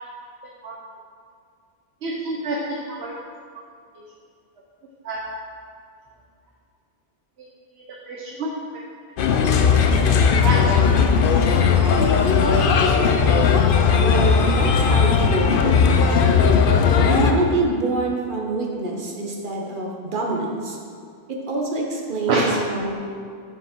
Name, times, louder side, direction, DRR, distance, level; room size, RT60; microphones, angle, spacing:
voice 1, 2.0-2.6 2.9-3.1 5.0-5.2 8.1-8.5 9.7-9.9 10.4-10.6 11.6-11.7 22.3-22.4, right 3 dB, 75° right, -3 dB, 1.1 m, -27 dB
Bird, 9.2-17.3, left 6 dB, 60° left, 0.7 m, -17 dB
voice 2, 13.9-16.5 17.0-20.8 21.3-22.9, right 2 dB, 50° right, -1 dB, 1.2 m, -26 dB
7.3 x 6.6 x 4.4 m, 2.2 s
omnidirectional pair, 1.1 m